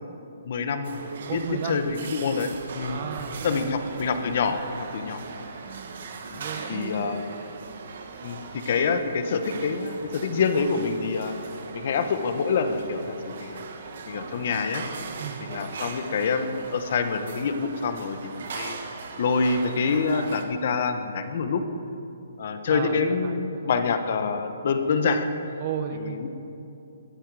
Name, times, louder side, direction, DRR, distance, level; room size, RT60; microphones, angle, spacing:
voice 1, 0.4-3.0 3.4-5.2 6.3-7.2 8.2-8.4 8.6-11.3 11.7-13.7 14.1-14.8 15.4-18.8 19.2-21.6 22.4-25.3 26.1-26.3, left 5 dB, 45° left, 8 dB, 1.1 m, -26 dB
sound 1, 0.8-20.4, right 4 dB, 50° right, 1.3 m, -39 dB
voice 2, 1.3-1.8 2.9-3.7 6.4-7.1 15.2-15.5 22.7-23.7 25.6-26.3, right 8 dB, 30° right, 7 dB, 0.9 m, -34 dB
21.0 x 9.0 x 4.9 m, 2.8 s
hypercardioid pair, 170°, 0 cm